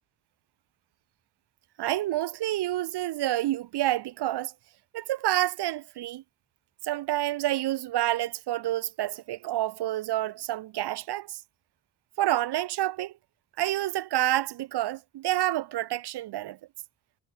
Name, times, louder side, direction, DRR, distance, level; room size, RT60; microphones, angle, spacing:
voice 1, 1.8-4.5 4.9-6.2 6.8-11.4 12.2-13.1 13.6-16.6, right 14 dB, 80° right, 0.8 m, -28 dB
cardioid pair, 95°, 39 cm